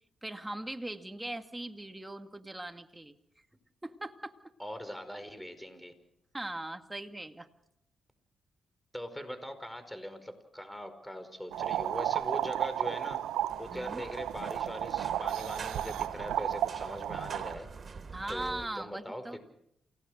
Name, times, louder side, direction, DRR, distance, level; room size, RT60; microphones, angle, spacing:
voice 1, 0.2-3.2 3.8-4.3 6.3-7.5 13.7-14.0 18.1-19.4, right 1 dB, 15° right, 7 dB, 2.2 m, -40 dB
voice 2, 4.6-5.9 8.9-13.2 13.6-17.7 18.3-19.4, equal, 5° left, 10 dB, 5.0 m, -41 dB
sound 1, 11.5-17.6, right 11 dB, 85° right, 0.8 m, -33 dB
sound 2, 13.5-18.7, right 4 dB, 45° right, 3.2 m, -46 dB
28.5 x 17.5 x 6.5 m, 0.76 s
supercardioid pair, 55°, 0 cm